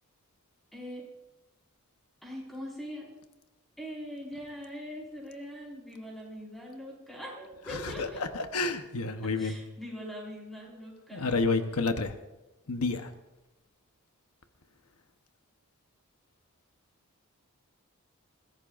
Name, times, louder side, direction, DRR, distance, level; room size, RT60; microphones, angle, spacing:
voice 1, 0.7-1.0 2.2-3.1 3.8-8.2 9.4-11.4, equal, ahead, -3 dB, 4.9 m, -42 dB
voice 2, 7.7-8.1 8.3-9.6 11.1-12.1 12.7-13.1, left 3 dB, 85° left, 7 dB, 1.0 m, -29 dB
21.0 x 16.5 x 2.5 m, 1.1 s
head